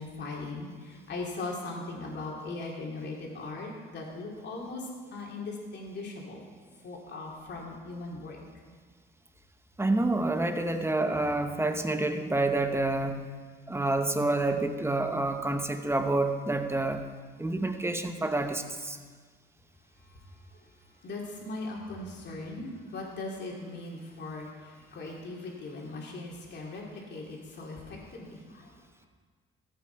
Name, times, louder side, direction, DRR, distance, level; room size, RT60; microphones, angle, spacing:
voice 1, 0.0-6.4 6.8-8.4 21.0-28.7, left 2 dB, 60° left, -1 dB, 2.7 m, -39 dB
voice 2, 9.8-13.3 13.7-17.0 17.4-19.0, right 2 dB, 10° right, 7 dB, 1.0 m, -28 dB
14.5 x 8.4 x 4.5 m, 1.5 s
cardioid pair, 90°, 20 cm